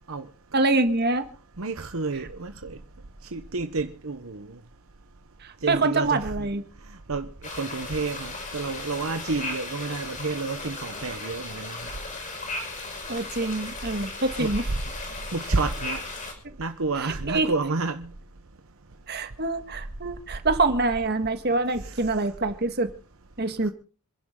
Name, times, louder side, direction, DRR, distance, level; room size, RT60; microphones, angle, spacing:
voice 1, 0.5-1.3 5.4-6.6 13.1-14.6 17.0-17.5 19.1-22.9 23.4-23.7, right 2 dB, 45° right, 1.7 m, -25 dB
voice 2, 1.6-2.8 3.3-4.5 5.6-6.4 7.1-11.9 14.4-14.5 15.3-16.0 16.6-18.1 21.8-22.1, right 3 dB, 65° right, 1.0 m, -30 dB
sound 1, 7.4-16.3, left 2 dB, 35° left, 5.7 m, -36 dB
27.0 x 11.0 x 3.8 m
head